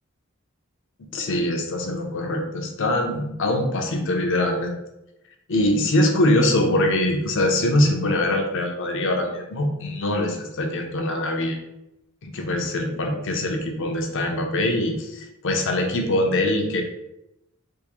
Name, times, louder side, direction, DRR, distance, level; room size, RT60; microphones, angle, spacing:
voice 1, 1.0-4.7 5.5-11.6 12.2-16.8, left 1 dB, 60° left, 3 dB, 0.6 m, -23 dB
3.6 x 2.6 x 3.0 m, 0.87 s
head